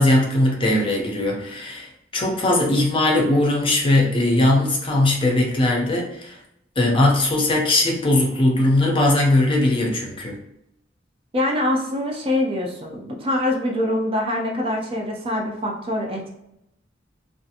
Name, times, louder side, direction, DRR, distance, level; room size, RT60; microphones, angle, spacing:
voice 1, 0.0-6.4 6.8-10.4, left 1 dB, 25° left, 0 dB, 0.5 m, -19 dB
voice 2, 11.3-16.3, left 1 dB, 30° right, 0 dB, 0.4 m, -24 dB
2.5 x 2.4 x 2.7 m, 0.79 s
head